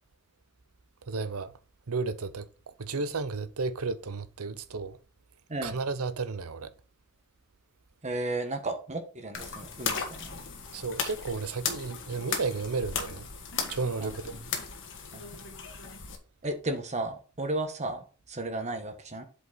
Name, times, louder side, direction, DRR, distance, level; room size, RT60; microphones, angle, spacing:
voice 1, 1.1-1.5 1.9-2.5 2.8-5.0 5.6-6.7 10.7-13.3 13.7-14.3, right 4 dB, 75° right, 0.8 m, -33 dB
voice 2, 8.0-10.4 14.0-14.6 15.1-15.3 16.4-19.2, right 2 dB, 30° right, 1.3 m, -34 dB
sound 1, 9.3-16.2, left 6 dB, 60° left, 1.5 m, -36 dB
7.8 x 5.3 x 4.0 m
head